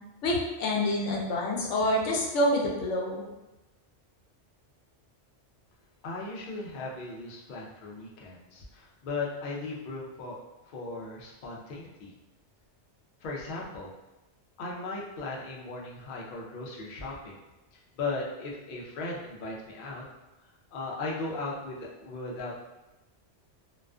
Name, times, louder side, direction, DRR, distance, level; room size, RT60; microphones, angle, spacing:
voice 1, 0.2-3.3, left 1 dB, 90° left, -2 dB, 0.9 m, -27 dB
voice 2, 6.0-10.4 10.7-12.1 13.2-13.9 14.6-17.3 18.0-20.0 20.7-22.6, left 3 dB, 60° left, -3 dB, 0.6 m, -37 dB
2.4 x 2.3 x 2.2 m, 0.99 s
omnidirectional pair, 1.2 m